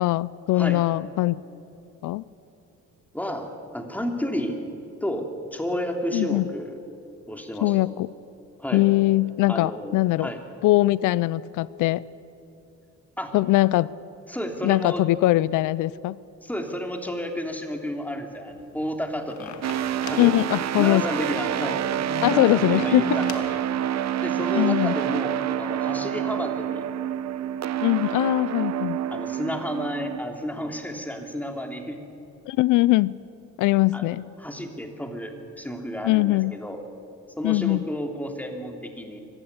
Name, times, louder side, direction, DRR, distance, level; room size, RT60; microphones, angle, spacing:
voice 1, 0.0-1.4 2.0-2.2 6.1-6.4 7.6-8.1 8.7-10.3 10.6-12.0 13.3-13.9 14.6-16.2 20.2-21.1 22.2-23.0 24.6-24.9 27.8-29.0 32.5-33.2 33.6-34.2 36.0-36.6 37.4-37.8, left 18 dB, 90° left, 20 dB, 0.5 m, -21 dB
voice 2, 3.1-3.5 3.7-4.6 5.0-6.8 7.3-7.8 8.6-8.9 9.5-10.4 13.2-13.3 14.3-15.0 16.4-20.4 20.8-21.8 22.3-23.4 24.2-26.9 29.1-32.0 33.9-34.1 34.4-36.8 37.4-39.2, equal, 5° left, 4 dB, 3.1 m, -31 dB
sound 1, 18.5-23.6, left 8 dB, 70° left, 1.8 m, -42 dB
sound 2, 19.6-30.2, right 10 dB, 60° right, 0.9 m, -27 dB
24.0 x 15.0 x 9.8 m, 2.8 s
cardioid pair, 90°, 30 cm